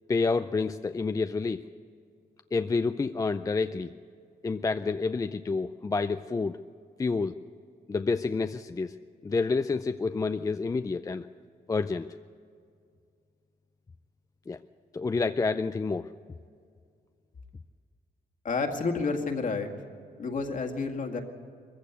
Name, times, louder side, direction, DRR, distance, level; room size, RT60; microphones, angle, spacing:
voice 1, 0.1-1.6 2.5-3.9 4.4-6.6 7.0-7.3 7.9-8.9 9.2-11.3 11.7-12.1 14.5-14.6 14.9-16.1, left 4 dB, 20° left, 9 dB, 0.4 m, -28 dB
voice 2, 18.4-19.7 20.2-21.2, left 4 dB, 50° left, 4 dB, 2.1 m, -30 dB
21.5 x 15.0 x 8.2 m, 2.2 s
cardioid pair, 105°, 16 cm